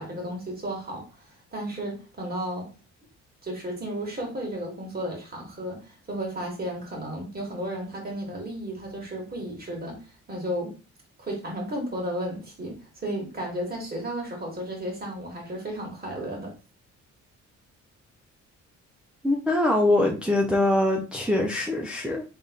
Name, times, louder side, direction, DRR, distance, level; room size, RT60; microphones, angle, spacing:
voice 1, 0.0-2.7 3.4-10.7 11.2-16.5, right 1 dB, 30° right, 2.3 m, -33 dB
voice 2, 19.2-22.2, left 1 dB, 5° right, 0.8 m, -23 dB
3.6 x 3.4 x 4.0 m
cardioid pair, 90°, 30 cm